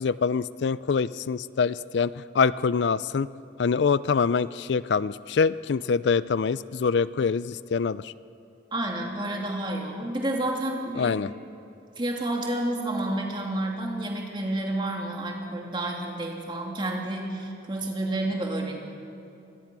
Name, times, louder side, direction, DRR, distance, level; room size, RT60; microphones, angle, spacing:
voice 1, 0.0-3.3 3.6-8.1 11.0-11.3, left 5 dB, 75° left, 17 dB, 0.4 m, -25 dB
voice 2, 8.7-11.3 12.0-18.8, right 1 dB, 25° right, 0 dB, 2.5 m, -30 dB
24.5 x 19.0 x 6.1 m, 2.7 s
head